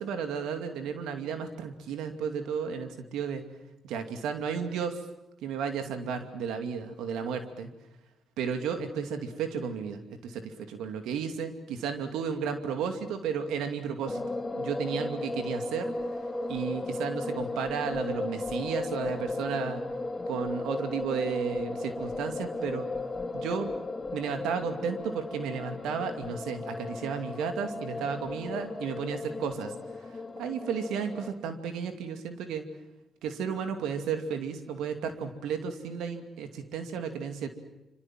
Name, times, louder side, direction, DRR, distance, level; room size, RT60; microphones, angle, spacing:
voice 1, 0.0-3.4 3.8-5.0 5.4-7.7 8.4-14.2 14.5-15.9 16.5-19.8 20.3-22.9 23.3-23.7 24.1-29.7 30.1-32.6 33.2-37.5, right 6 dB, 85° right, 7 dB, 2.5 m, -33 dB
sound 1, 14.1-31.3, left 2 dB, 30° left, 2.7 m, -35 dB
26.5 x 25.5 x 7.6 m, 0.95 s
supercardioid pair, 60°, 0 cm